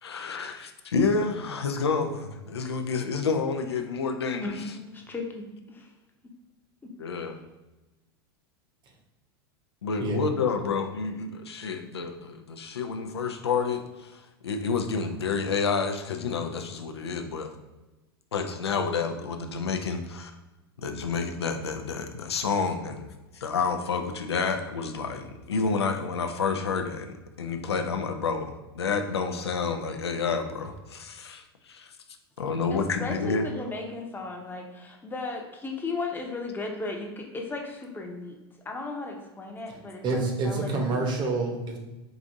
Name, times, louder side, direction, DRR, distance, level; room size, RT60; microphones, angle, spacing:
voice 1, 0.0-4.6 7.0-7.4 9.8-17.5 18.3-20.3 20.8-23.1 23.3-31.9 32.4-33.4, left 5 dB, 90° left, 6 dB, 0.4 m, -29 dB
voice 2, 4.4-5.9 32.7-38.4 38.6-41.1, left 3 dB, 15° left, 2 dB, 0.7 m, -36 dB
voice 3, 40.0-41.8, right 3 dB, 35° right, 2 dB, 0.9 m, -27 dB
4.8 x 2.6 x 2.5 m, 1.1 s
hypercardioid pair, 95°, 13 cm